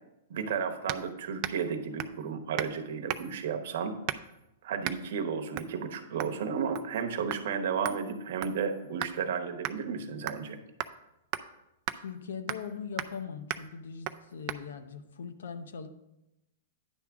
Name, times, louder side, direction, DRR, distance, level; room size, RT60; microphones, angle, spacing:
voice 1, 0.3-4.0 4.6-10.6, right 6 dB, 65° right, 5 dB, 0.9 m, -33 dB
sound 1, 0.9-1.1 1.4-1.7 2.0-2.2 2.6-2.8 3.1-3.4 4.1-4.4 4.8-5.0 5.6-5.7 6.2-6.4 6.8-7.0 7.3-7.4 7.9-9.2 9.6-9.8 10.3-10.5 10.8-11.0 11.3-11.5 11.9-12.0 12.5-12.7 13.0-13.2 13.5-13.7 14.1-14.2 14.5-14.6, right 13 dB, 40° right, 0.4 m, -36 dB
voice 2, 11.9-15.9, left 6 dB, 85° left, 10 dB, 0.7 m, -40 dB
9.9 x 3.6 x 5.9 m, 0.91 s
hypercardioid pair, 140°, 0 cm